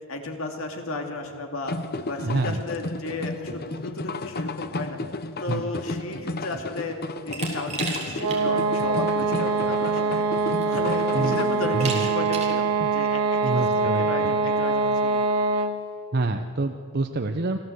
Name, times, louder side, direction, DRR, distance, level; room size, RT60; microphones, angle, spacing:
voice 1, 0.1-1.8 2.1-5.0 5.4-7.0 7.2-10.2 10.6-15.3, left 2 dB, 65° left, 3 dB, 2.6 m, -34 dB
sound 1, 1.7-11.9, left 2 dB, 45° left, 0.9 m, -33 dB
voice 2, 2.2-2.6 5.5-5.6 11.1-11.4 11.7-12.1 12.8-12.9 13.4-14.4 16.1-17.6, right 2 dB, 45° right, 5 dB, 0.9 m, -27 dB
Glass, 7.3-8.4 8.8-8.9 10.0-10.1 10.6-11.0 11.8-12.6, right 4 dB, 30° right, 3.8 m, -33 dB
sound 2, 8.2-15.9, right 4 dB, 90° right, 1.7 m, -24 dB
26.0 x 15.5 x 8.0 m, 2.2 s
head